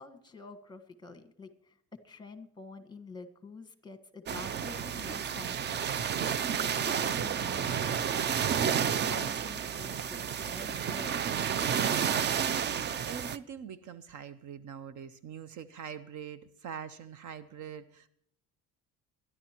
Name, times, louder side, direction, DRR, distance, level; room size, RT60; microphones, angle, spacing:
voice 1, 0.0-6.0 6.5-8.0 8.5-11.2, left 4 dB, 10° left, 7 dB, 1.4 m, -48 dB
sound 1, 4.3-13.4, right 8 dB, 30° right, 0.4 m, -31 dB
voice 2, 11.6-18.1, right 8 dB, 55° right, 14 dB, 0.7 m, -44 dB
22.5 x 11.0 x 2.9 m, 0.68 s
cardioid pair, 110°, 35 cm